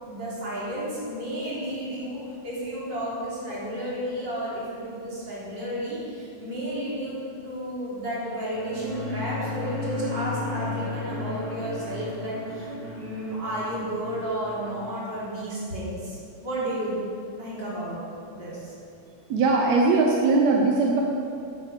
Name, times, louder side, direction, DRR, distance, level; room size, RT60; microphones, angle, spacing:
voice 1, 0.0-17.0 17.4-18.0 18.3-18.7, right 1 dB, 30° right, -8 dB, 4.1 m, -32 dB
sound 1, 8.4-15.0, left 3 dB, 30° left, 3.3 m, -35 dB
voice 2, 19.3-21.0, right 3 dB, 70° right, 0 dB, 1.7 m, -20 dB
11.0 x 9.3 x 6.7 m, 2.5 s
omnidirectional pair, 4.2 m